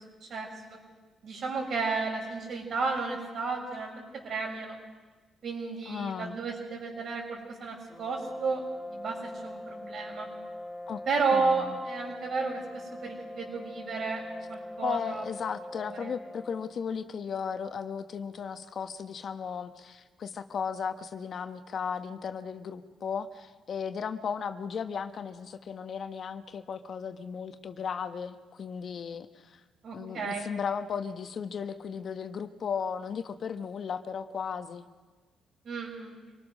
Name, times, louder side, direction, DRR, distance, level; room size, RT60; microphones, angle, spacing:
voice 1, 0.3-0.8 1.2-4.8 5.4-8.6 8.9-9.2 9.4-10.3 11.1-12.6 12.9-14.2 14.5-15.2 16.0-16.1 29.8-30.5 35.6-36.1, right 4 dB, 60° right, -1 dB, 7.3 m, -32 dB
voice 2, 5.9-6.4 10.9-11.0 11.3-11.8 14.8-29.6 29.9-34.8, left 6 dB, 55° left, 9 dB, 1.2 m, -35 dB
sound 1, 7.9-16.8, left 1 dB, 5° left, 2.9 m, -42 dB
26.0 x 20.0 x 6.4 m, 1.3 s
cardioid pair, 90°, 0 cm